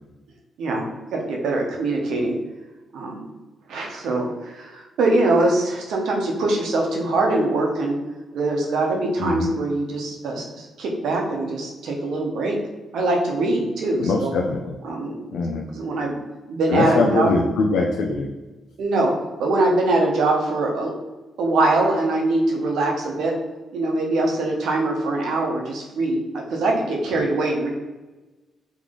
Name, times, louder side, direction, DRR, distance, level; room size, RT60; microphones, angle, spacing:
voice 1, 1.1-2.4 2.9-3.2 3.7-8.0 8.3-12.6 12.9-14.3 14.8-15.4 15.7-16.2 16.5-17.3 18.8-19.1 19.4-20.9 21.4-23.3 23.7-27.7, right 2 dB, 80° right, 1 dB, 0.9 m, -23 dB
voice 2, 9.2-9.5 14.0-14.8 15.3-15.7 16.7-18.3, left 3 dB, 80° left, 1 dB, 0.4 m, -22 dB
3.6 x 3.1 x 3.7 m, 1.1 s
cardioid pair, 65°, 0 cm